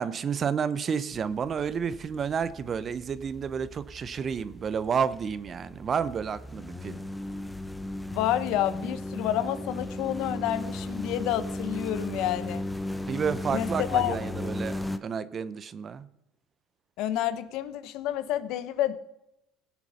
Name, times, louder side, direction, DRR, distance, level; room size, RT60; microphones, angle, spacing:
voice 1, 0.0-7.0 13.1-16.1, right 6 dB, 40° right, 0.7 m, -30 dB
sound 1, 1.1-15.0, left 1 dB, 10° left, 0.9 m, -36 dB
voice 2, 8.1-12.6 13.5-14.2 17.0-19.0, left 12 dB, 65° left, 0.9 m, -29 dB
17.0 x 7.1 x 5.6 m
hypercardioid pair, 80°, 0 cm